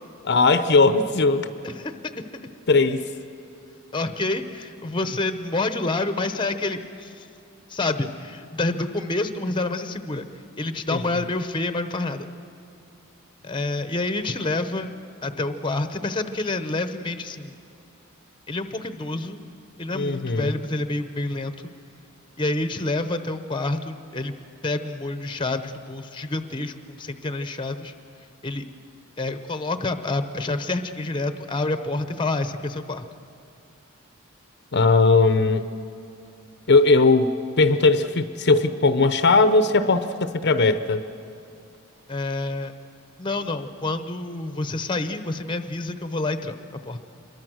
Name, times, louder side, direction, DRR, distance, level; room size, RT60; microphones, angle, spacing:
voice 1, 0.2-1.5 2.7-3.1 10.9-11.2 19.9-20.5 34.7-35.6 36.7-41.0, left 3 dB, 50° left, 10 dB, 0.8 m, -19 dB
voice 2, 1.6-2.2 3.9-7.2 7.7-10.3 10.6-12.3 13.4-14.9 15.2-17.6 18.5-19.4 19.8-21.5 22.4-24.3 24.6-27.9 28.4-28.6 29.2-33.1 42.1-42.7 43.2-46.6 46.9-47.0, left 2 dB, 25° left, 10 dB, 0.9 m, -28 dB
26.0 x 22.5 x 6.4 m, 2.6 s
head